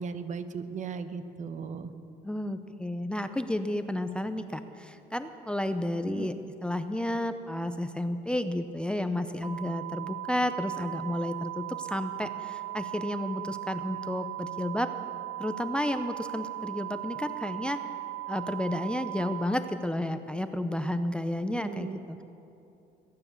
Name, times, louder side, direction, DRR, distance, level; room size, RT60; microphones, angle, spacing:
voice 1, 0.0-1.9 6.1-6.3 21.5-22.0, right 5 dB, 45° right, 10 dB, 1.0 m, -37 dB
voice 2, 2.2-6.3 6.6-14.9 15.4-17.8 18.3-22.2, left 1 dB, 5° left, 9 dB, 0.6 m, -32 dB
sound 1, 9.4-19.4, right 18 dB, 15° right, 1.3 m, -38 dB
21.0 x 9.6 x 7.0 m, 2.8 s
cardioid pair, 110°, 17 cm